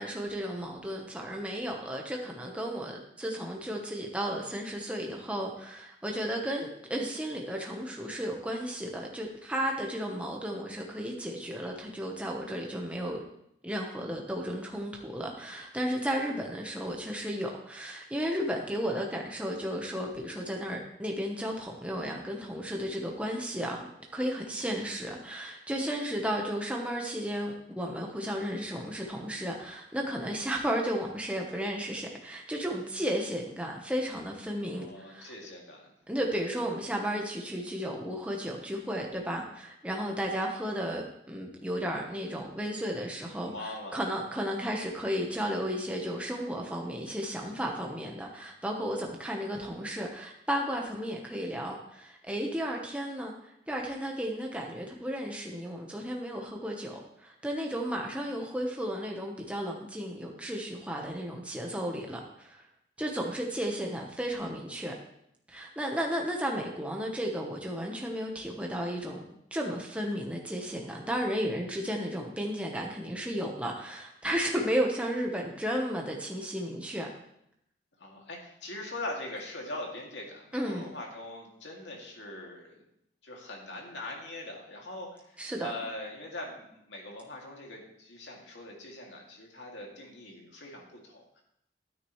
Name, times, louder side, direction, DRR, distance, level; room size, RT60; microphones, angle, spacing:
voice 1, 0.0-13.3 13.6-35.3 36.1-62.6 63.0-64.9 65.5-69.2 69.5-77.1 80.5-80.9 85.4-85.7, equal, 5° right, 0 dB, 1.1 m, -34 dB
voice 2, 34.6-35.9 43.4-44.2 78.0-82.7 83.2-91.4, left 1 dB, 80° left, -1 dB, 2.4 m, -42 dB
13.0 x 9.6 x 3.2 m, 0.76 s
head